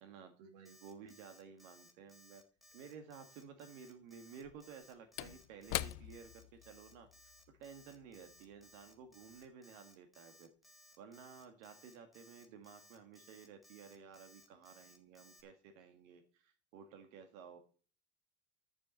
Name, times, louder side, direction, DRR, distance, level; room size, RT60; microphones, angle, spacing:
voice 1, 0.0-2.4 2.7-7.1 7.5-10.5 11.0-17.6, right 6 dB, 80° right, 6 dB, 1.8 m, -54 dB
Alarm, 0.7-15.4, equal, ahead, 0.8 m, -63 dB
Slam / Wood, 2.7-2.8 4.3-9.0 9.3-9.5, left 18 dB, 60° left, 0.5 m, -45 dB
7.1 x 6.9 x 8.0 m, 0.39 s
cardioid pair, 180°, 39 cm